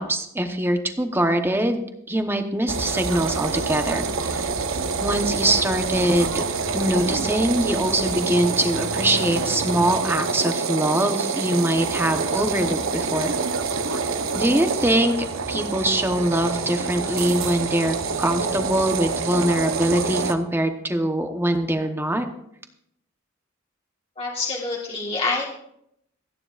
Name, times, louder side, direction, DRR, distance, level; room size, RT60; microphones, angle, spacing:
voice 1, 0.0-4.5 5.0-6.4 6.7-13.3 14.3-15.1 15.5-22.3, right 1 dB, 10° right, 6 dB, 1.0 m, -23 dB
sound 1, 2.7-20.3, right 4 dB, 80° right, 0.9 m, -26 dB
voice 2, 24.2-25.4, left 3 dB, 30° left, -3 dB, 1.5 m, -26 dB
26.5 x 9.8 x 2.5 m, 0.75 s
head